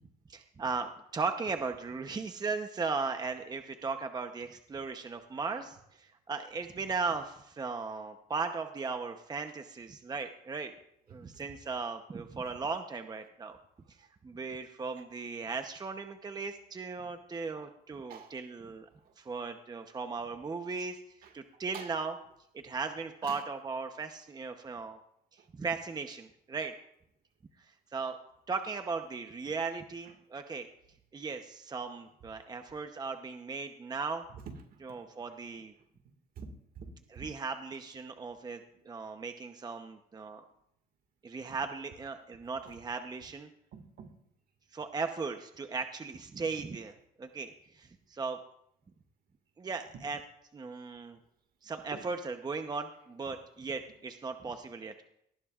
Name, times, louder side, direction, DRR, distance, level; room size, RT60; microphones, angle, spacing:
voice 1, 0.3-10.7 11.1-13.6 13.9-18.9 19.2-22.1 22.5-25.0 25.3-26.7 27.6-28.2 28.5-30.7 31.1-34.2 34.8-35.7 37.1-40.4 41.2-43.5 44.7-48.4 49.6-50.2 50.5-51.2 51.6-55.0, right 4 dB, 25° right, 6 dB, 0.9 m, -37 dB
voice 2, 36.4-37.3 43.7-44.1, right 6 dB, 60° right, 6 dB, 2.0 m, -47 dB
19.0 x 14.0 x 2.5 m, 0.74 s
cardioid pair, 110°, 17 cm